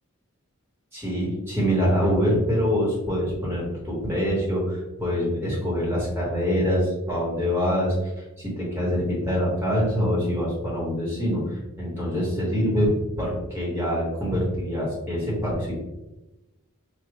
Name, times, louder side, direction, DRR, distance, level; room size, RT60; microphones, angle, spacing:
voice 1, 0.9-8.1 8.4-12.9 13.2-15.7, equal, 10° right, -6 dB, 1.4 m, -25 dB
5.0 x 2.6 x 3.0 m, 1.0 s
head